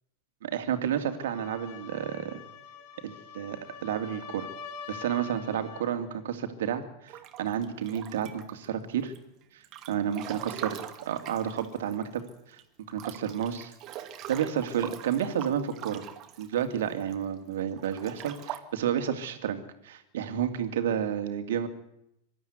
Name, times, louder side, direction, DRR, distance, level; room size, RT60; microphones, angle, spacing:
voice 1, 0.4-2.4 3.0-4.5 4.9-9.1 9.5-9.6 9.9-12.2 12.5-12.6 12.9-16.0 16.4-21.7, right 9 dB, 70° right, 8 dB, 2.5 m, -31 dB
sound 1, 1.0-6.0, left 7 dB, 50° left, 2.9 m, -45 dB
Breathing / Bathtub (filling or washing) / Splash splatter, 7.1-8.6 9.1-12.3 12.6-12.7 12.9-17.1 17.7-18.6, right 11 dB, 40° right, 2.1 m, -42 dB
25.0 x 12.5 x 9.6 m, 0.81 s
hypercardioid pair, 95°, 0 cm